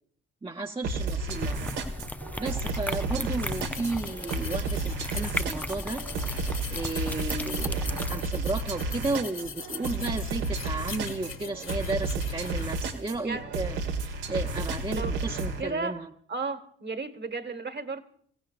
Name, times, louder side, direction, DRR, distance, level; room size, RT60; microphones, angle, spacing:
voice 1, 0.4-1.7 2.4-6.0 6.7-16.1, right 3 dB, 15° right, 1.1 m, -33 dB
sound 1, 0.8-15.6, right 3 dB, 80° right, 1.9 m, -32 dB
sound 2, 1.3-8.2, left 1 dB, 5° left, 0.6 m, -36 dB
sound 3, 3.4-12.7, left 6 dB, 40° left, 1.9 m, -42 dB
voice 2, 13.2-13.5 14.9-15.2 15.6-16.0 16.3-18.0, right 3 dB, 35° right, 1.6 m, -34 dB
28.0 x 16.5 x 2.5 m
hypercardioid pair, 50°, 32 cm